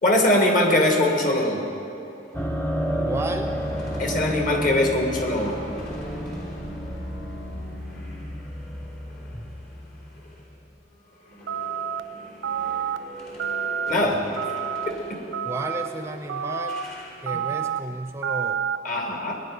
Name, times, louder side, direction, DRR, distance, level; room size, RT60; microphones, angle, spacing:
voice 1, 0.0-1.7 4.0-5.7 13.9-14.2 14.9-15.2 18.8-19.4, left 1 dB, 45° left, 1 dB, 1.9 m, -22 dB
sound 1, 2.1-10.5 10.8-17.7, equal, 60° left, 3.4 m, -43 dB
sound 2, 2.3-10.7, equal, 10° left, 0.8 m, -31 dB
voice 2, 3.0-3.5 15.4-16.8 17.2-18.7, right 2 dB, 15° right, 6 dB, 0.5 m, -33 dB
sound 3, 11.5-12.0 12.4-13.0 13.4-13.9 14.4-14.9 15.3-15.9 16.3-16.8 17.3-17.8 18.2-18.8, right 8 dB, 90° right, 0.5 m, -28 dB
19.5 x 9.8 x 5.0 m, 2.8 s
head